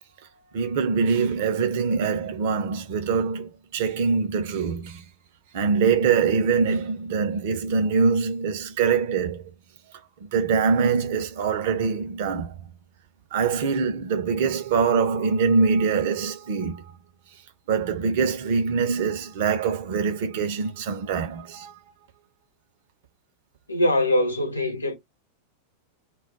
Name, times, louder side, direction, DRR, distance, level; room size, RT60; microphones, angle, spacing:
voice 1, 0.5-5.1 5.5-9.4 10.3-12.6 13.3-16.8 17.7-21.7, right 5 dB, 50° right, 0.7 m, -24 dB
voice 2, 23.7-24.9, left 1 dB, 80° left, 0.9 m, -22 dB
2.3 x 2.2 x 3.7 m
figure-of-eight pair, 90°, 0 cm